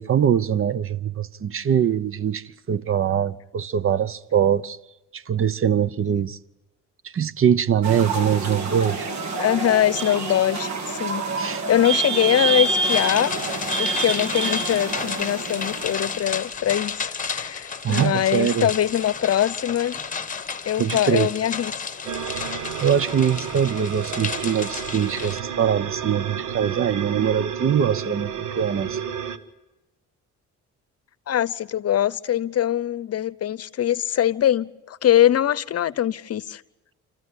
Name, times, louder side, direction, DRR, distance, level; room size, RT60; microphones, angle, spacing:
voice 1, 0.0-4.8 5.1-6.4 7.1-9.1 11.4-11.6 17.8-18.7 20.8-21.3 22.8-29.0, right 8 dB, 45° right, 0.9 m, -22 dB
sound 1, 7.8-16.4, right 4 dB, 65° right, 3.0 m, -27 dB
voice 2, 9.4-13.3 13.8-20.0 20.7-21.7 31.3-36.6, left 11 dB, 55° left, 0.8 m, -22 dB
sound 2, 12.8-25.4, left 5 dB, 25° left, 1.4 m, -32 dB
sound 3, 22.0-29.4, right 8 dB, 80° right, 1.3 m, -32 dB
28.0 x 14.5 x 9.7 m
cardioid pair, 90°, 30 cm